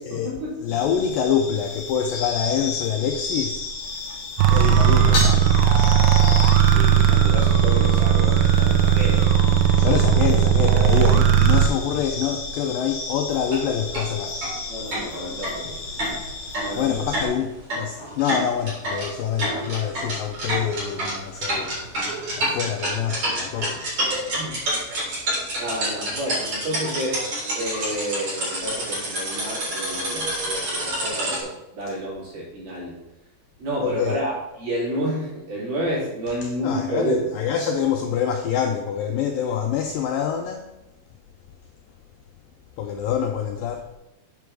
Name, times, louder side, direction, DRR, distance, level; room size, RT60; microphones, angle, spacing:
voice 1, 0.1-0.5 6.7-9.3 14.7-15.7 16.6-17.0 24.3-24.6 25.6-27.3 27.5-33.0 33.6-37.2, right 1 dB, 65° right, -6 dB, 5.0 m, -30 dB
voice 2, 0.6-3.6 4.5-5.5 9.8-14.5 16.8-23.8 25.5-25.6 33.8-34.2 36.4-40.7 42.8-43.9, left 8 dB, 80° left, 3 dB, 2.0 m, -26 dB
sound 1, 0.7-17.3, left 3 dB, 55° left, 1.9 m, -34 dB
sound 2, 4.4-11.7, right 9 dB, 85° right, 2.5 m, -17 dB
sound 3, 13.4-13.6 13.9-14.1 14.4-14.5 14.9-31.4, right 1 dB, 45° right, 4.7 m, -28 dB
8.4 x 4.9 x 6.2 m, 0.92 s
omnidirectional pair, 4.7 m